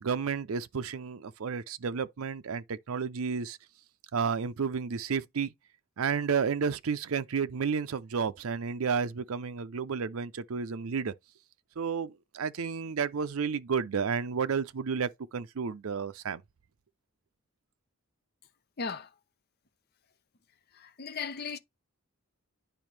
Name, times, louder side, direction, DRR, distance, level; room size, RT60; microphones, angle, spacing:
voice 1, 0.0-3.6 4.1-5.5 6.0-11.1 11.8-16.4, right 6 dB, 75° right, 0.5 m, -31 dB
voice 2, 18.8-19.1 20.7-21.6, left 5 dB, 45° left, 0.7 m, -37 dB
9.1 x 5.0 x 3.3 m
head